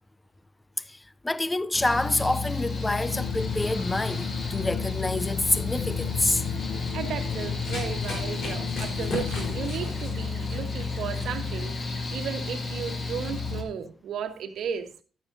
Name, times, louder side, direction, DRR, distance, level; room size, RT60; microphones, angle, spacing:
voice 1, 1.2-6.4, left 2 dB, 15° left, 0.4 m, -27 dB
Mechanical fan, 1.7-13.6, left 4 dB, 40° left, 1.9 m, -32 dB
sound 1, 3.1-9.7, left 9 dB, 90° left, 0.5 m, -36 dB
Run, 6.5-12.1, left 2 dB, 70° left, 3.9 m, -39 dB
voice 2, 6.9-14.9, right 7 dB, 70° right, 1.3 m, -35 dB
11.5 x 9.3 x 2.6 m
cardioid pair, 110°, 0 cm